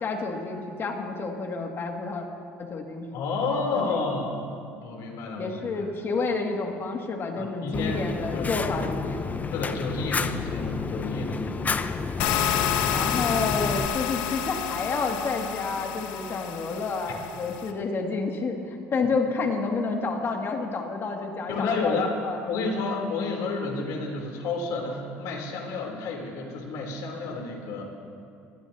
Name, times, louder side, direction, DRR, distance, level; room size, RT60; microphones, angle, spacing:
voice 1, 0.0-2.3 2.6-3.1 3.7-4.0 5.4-9.2 12.9-22.0 22.2-22.5, left 4 dB, 40° left, 1 dB, 2.4 m, -29 dB
voice 2, 3.1-4.5 4.8-5.9 7.3-8.0 8.3-8.8 9.5-11.7 17.1-17.2 21.5-22.1 22.5-27.8, left 3 dB, 70° left, 0 dB, 3.6 m, -30 dB
Fire, 7.7-13.9, left 4 dB, 25° left, 0.7 m, -30 dB
sound 1, 12.2-17.7, left 9 dB, 85° left, 1.1 m, -29 dB
23.0 x 15.5 x 2.9 m, 2.5 s
supercardioid pair, 90°, 6 cm